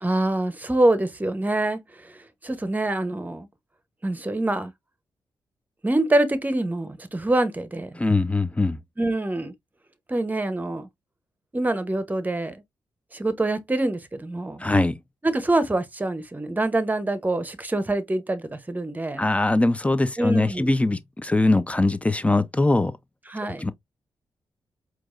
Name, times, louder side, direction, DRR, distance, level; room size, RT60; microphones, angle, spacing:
voice 1, 0.0-3.5 4.0-4.7 5.8-8.0 9.0-9.5 10.1-10.9 11.5-12.6 13.1-14.6 15.2-19.2 20.2-20.7 23.3-23.6, right 2 dB, 20° right, 0.9 m, -25 dB
voice 2, 8.0-8.8 14.6-15.0 19.2-22.9 23.6-23.7, left 2 dB, 15° left, 0.7 m, -21 dB
4.6 x 3.0 x 2.5 m
cardioid pair, 55°, 9 cm